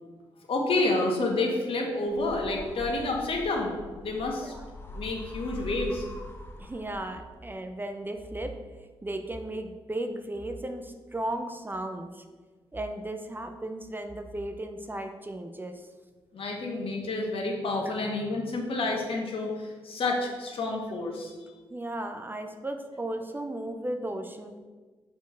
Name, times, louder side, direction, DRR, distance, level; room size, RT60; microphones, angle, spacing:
voice 1, 0.5-4.5 4.9-6.0 16.3-21.3, left 2 dB, 65° left, 1 dB, 1.5 m, -29 dB
sound 1, 2.1-7.4, left 1 dB, 20° left, 1.0 m, -42 dB
voice 2, 4.3-4.6 6.6-8.6 9.0-12.2 12.7-15.8 17.9-18.0 21.7-24.6, right 1 dB, 20° right, 6 dB, 0.7 m, -35 dB
5.2 x 4.6 x 6.2 m, 1.4 s
cardioid pair, 65°, 10 cm